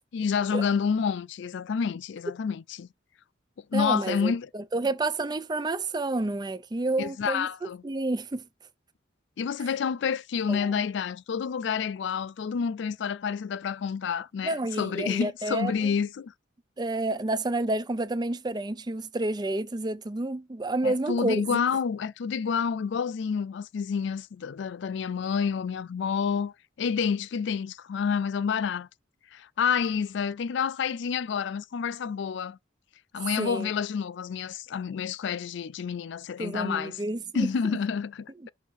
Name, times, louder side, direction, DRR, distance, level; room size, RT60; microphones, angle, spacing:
voice 1, 0.1-2.9 3.7-4.5 7.0-7.8 9.4-16.3 20.8-28.9 29.3-32.6 33.1-37.0 37.3-38.5, left 6 dB, 60° left, 0.3 m, -29 dB
voice 2, 3.7-8.4 10.5-10.8 14.4-15.9 16.8-21.6 33.4-33.7 36.4-37.8, right 2 dB, 20° right, 0.4 m, -30 dB
6.3 x 2.8 x 5.4 m
head